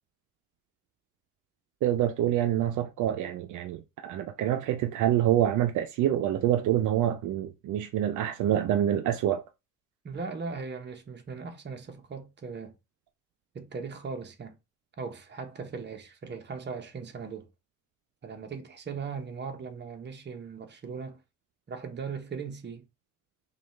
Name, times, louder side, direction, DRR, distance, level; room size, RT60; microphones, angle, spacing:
voice 1, 1.8-9.4, right 11 dB, 80° right, 0.5 m, -26 dB
voice 2, 10.0-12.7 13.5-14.6 15.0-17.5 18.2-21.2 21.7-22.9, right 5 dB, 35° right, 0.9 m, -38 dB
5.0 x 2.4 x 3.2 m
cardioid pair, 90°, 30 cm